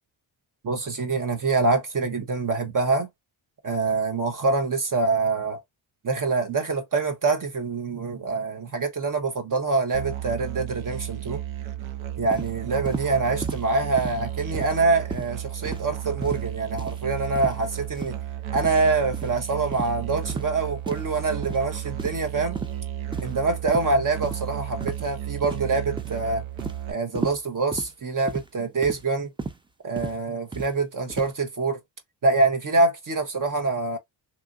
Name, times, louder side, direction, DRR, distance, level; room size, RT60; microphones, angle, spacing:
voice 1, 0.6-3.1 3.6-5.6 6.0-11.4 12.2-18.2 18.5-22.6 23.2-26.4 26.9-29.3 29.8-31.8 32.2-34.0, right 3 dB, 40° right, 0.7 m, -25 dB
Musical instrument, 9.9-26.9, right 12 dB, 80° right, 0.6 m, -33 dB
sound 1, 12.3-12.5 12.9-13.1 13.4-13.7 14.0-14.2 14.5-14.8 15.1-15.3 15.7-15.9 16.2-16.5 16.8-17.0 17.4-17.6 17.9-18.2 18.6-18.8 19.1-19.3 19.7-19.9 20.3-20.5 20.9-21.1 21.4-21.6 22.0-22.3 22.5-22.7 23.1-23.4 23.7-23.9 24.2-24.4 24.8-25.1 25.4-25.7 26.0-26.2 26.6-26.8 27.2-27.4 27.7-27.9 28.3-28.5 28.8-29.0 29.4-29.6 30.0-30.2 30.5-30.7 31.1-31.3, right 3 dB, 10° right, 0.4 m, -33 dB
2.9 x 2.4 x 2.3 m
cardioid pair, 85°, 47 cm